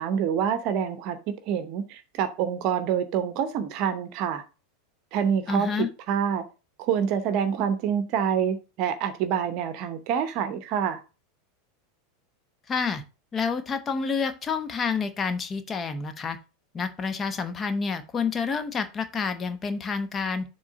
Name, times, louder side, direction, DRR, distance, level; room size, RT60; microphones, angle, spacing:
voice 1, 0.0-4.4 5.1-6.4 6.8-11.0, right 8 dB, 45° right, 10 dB, 0.8 m, -27 dB
voice 2, 5.5-5.9 12.7-13.0 13.3-16.4 16.7-20.4, left 5 dB, 25° left, 10 dB, 0.9 m, -28 dB
7.1 x 3.2 x 5.7 m, 0.31 s
figure-of-eight pair, 85°, 0 cm